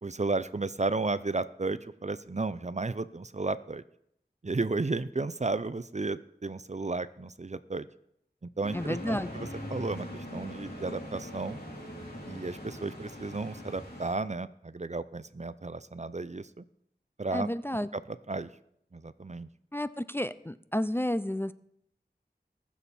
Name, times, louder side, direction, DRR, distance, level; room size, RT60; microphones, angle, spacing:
voice 1, 0.0-3.8 4.4-7.9 8.6-11.6 12.3-16.6 17.2-17.5 17.9-18.5 18.9-19.5, right 3 dB, 45° right, 15 dB, 0.5 m, -33 dB
sound 1, 8.6-14.1, left 1 dB, 70° left, 3.8 m, -41 dB
voice 2, 8.7-9.3 17.3-17.9 19.7-21.5, left 1 dB, 15° left, 14 dB, 0.4 m, -31 dB
19.0 x 7.1 x 4.2 m, 0.73 s
wide cardioid pair, 40°, 17 cm